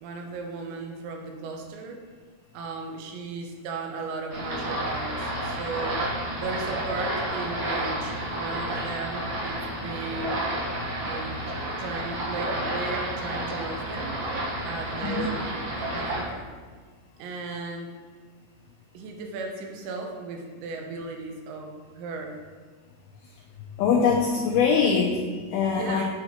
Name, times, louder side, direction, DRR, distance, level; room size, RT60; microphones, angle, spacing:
voice 1, 0.0-2.0 2.5-6.0 6.4-10.4 11.0-14.2 14.6-16.5 17.2-17.9 18.9-22.4 25.7-26.0, right 3 dB, 85° right, 2 dB, 3.1 m, -36 dB
sound 1, 4.3-16.2, right 1 dB, 60° right, 2.0 m, -31 dB
voice 2, 23.8-26.0, left 5 dB, 85° left, -1 dB, 2.1 m, -23 dB
7.7 x 7.4 x 3.0 m, 1.5 s
omnidirectional pair, 5.0 m